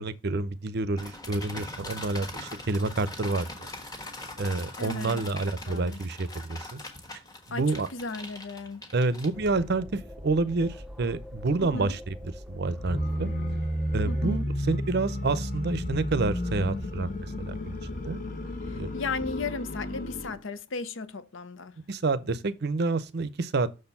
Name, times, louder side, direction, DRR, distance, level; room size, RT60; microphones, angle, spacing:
voice 1, 0.0-3.7 4.4-6.8 7.5-7.9 8.9-12.1 12.5-13.3 13.9-17.8 18.0-18.2 18.7-18.9 21.9-23.7, right 3 dB, 50° right, 0.6 m, -28 dB
sound 1, 1.0-9.7, left 2 dB, 20° left, 1.3 m, -42 dB
voice 2, 4.8-6.0 7.5-8.8 11.6-12.0 14.0-14.5 18.6-21.8, left 3 dB, 65° left, 0.7 m, -36 dB
sound 2, 9.3-14.4, equal, 5° right, 0.6 m, -44 dB
sound 3, 12.7-20.4, left 1 dB, 40° left, 1.4 m, -32 dB
6.5 x 4.4 x 5.4 m
head